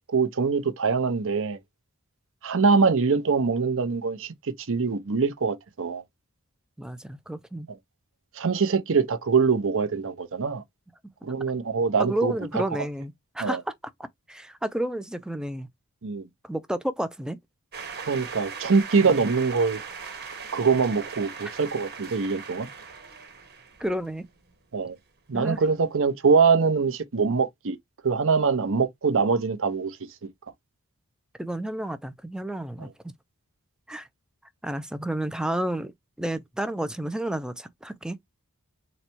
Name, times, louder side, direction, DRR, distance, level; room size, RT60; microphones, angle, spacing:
voice 1, 0.0-1.6 2.4-6.0 8.4-10.6 11.2-12.3 13.4-13.6 16.0-16.2 18.1-19.8 20.5-22.7 24.7-25.0 25.3-27.8 28.0-30.0, right 5 dB, 60° right, 0.7 m, -23 dB
voice 2, 6.8-7.7 12.0-13.7 14.0-15.7 16.4-17.4 19.0-19.2 23.8-24.3 25.3-25.6 31.4-33.1 33.9-34.1 34.6-35.9 36.2-38.2, right 1 dB, 5° right, 0.3 m, -31 dB
sound 1, 17.7-24.5, right 5 dB, 45° right, 1.3 m, -39 dB
4.0 x 2.1 x 4.4 m
head